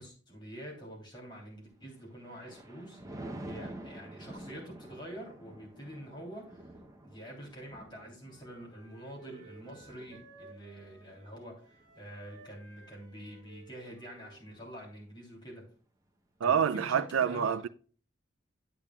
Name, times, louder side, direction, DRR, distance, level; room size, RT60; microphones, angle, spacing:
voice 1, 0.0-6.7 7.0-15.7 16.4-17.6, equal, 25° left, 3.1 m, -46 dB
Thunder, 1.9-13.4 13.9-14.2, right 1 dB, 15° right, 0.8 m, -49 dB
Wind instrument woodwind instrument, 7.7-15.5, right 3 dB, 60° right, 2.1 m, -58 dB
voice 2, 16.4-17.7, right 7 dB, 80° right, 0.4 m, -27 dB
8.7 x 8.4 x 2.3 m
head